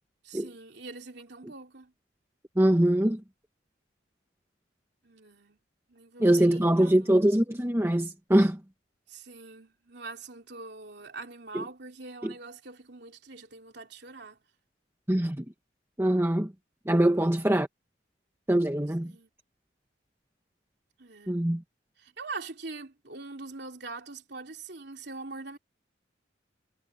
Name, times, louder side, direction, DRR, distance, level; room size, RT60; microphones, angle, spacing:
voice 1, 0.2-1.9 5.0-5.6 5.9-7.4 9.1-14.4 19.0-19.3 21.0-21.4 22.0-25.6, right 3 dB, 60° right, 3.3 m, -43 dB
voice 2, 2.6-3.2 6.2-8.6 11.5-11.6 12.2-12.3 15.1-15.4 16.0-16.5 16.9-17.7 18.5-19.1 21.3-21.6, right 1 dB, 15° right, 1.0 m, -23 dB
head